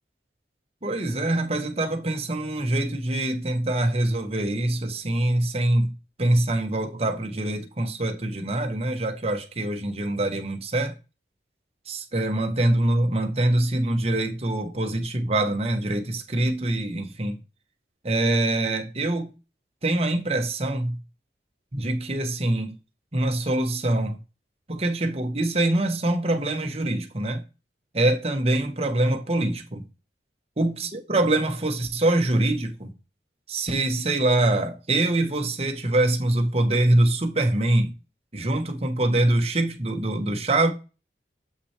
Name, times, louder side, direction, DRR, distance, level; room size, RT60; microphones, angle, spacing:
voice 1, 0.8-10.9 11.9-17.4 18.0-19.3 19.8-21.0 21.7-22.7 23.1-24.2 24.7-27.4 27.9-29.8 30.6-32.9 33.5-37.9 38.3-40.7, right 1 dB, 35° right, 1.0 m, -24 dB
7.6 x 5.9 x 3.3 m
head